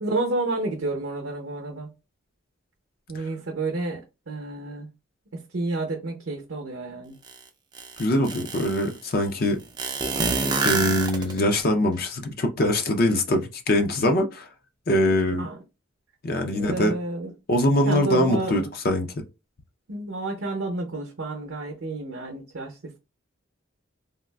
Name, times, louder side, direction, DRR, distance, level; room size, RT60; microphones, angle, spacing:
voice 1, 0.0-1.9 3.1-4.9 5.5-7.2 15.0-15.6 16.5-17.3 17.8-18.7 19.9-23.0, right 2 dB, 65° right, 0.7 m, -30 dB
sound 1, 7.3-7.4 7.7-8.9 9.8-11.6, right 4 dB, 20° right, 0.4 m, -26 dB
voice 2, 8.0-9.6 10.6-14.5 14.9-15.5 16.2-16.9 17.5-19.1, left 1 dB, 45° left, 0.5 m, -23 dB
3.5 x 2.4 x 2.2 m
head